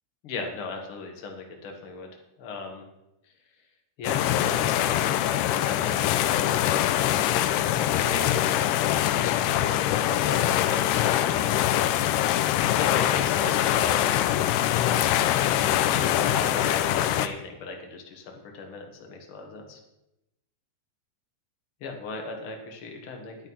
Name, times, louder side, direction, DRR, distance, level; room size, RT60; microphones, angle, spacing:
voice 1, 0.2-2.1 2.4-2.8 4.0-11.4 12.5-14.3 15.3-19.8 21.8-23.4, left 4 dB, 60° left, 2 dB, 1.3 m, -37 dB
sound 1, 4.0-17.3, left 12 dB, 85° left, 2.5 m, -23 dB
11.5 x 10.5 x 5.6 m, 0.89 s
omnidirectional pair, 5.1 m